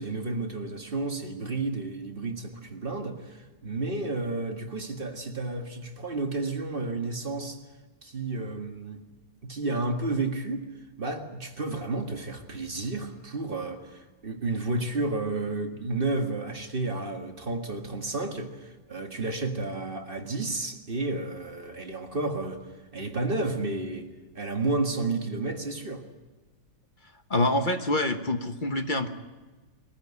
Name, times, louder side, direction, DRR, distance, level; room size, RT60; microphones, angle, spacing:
voice 1, 0.0-7.6 8.0-9.0 9.4-10.7 11.0-22.7 22.9-24.1 24.3-26.0, right 2 dB, 30° right, 1.8 m, -31 dB
voice 2, 27.3-29.1, left 2 dB, 30° left, 1.1 m, -26 dB
22.5 x 14.5 x 9.7 m
omnidirectional pair, 1.9 m